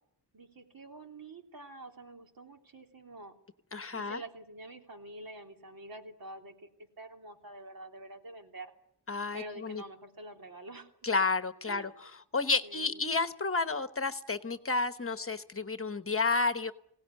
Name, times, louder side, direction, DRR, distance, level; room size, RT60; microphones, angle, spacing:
voice 1, 0.3-3.3 3.9-6.7 7.0-8.7 9.3-10.9 11.7-11.9 12.6-13.0, right 2 dB, 55° right, 3 dB, 3.3 m, -47 dB
voice 2, 3.7-4.2 9.1-9.8 11.0-16.7, left 3 dB, 35° left, 10 dB, 1.1 m, -31 dB
25.5 x 17.5 x 9.7 m, 0.74 s
wide cardioid pair, 145°, 41 cm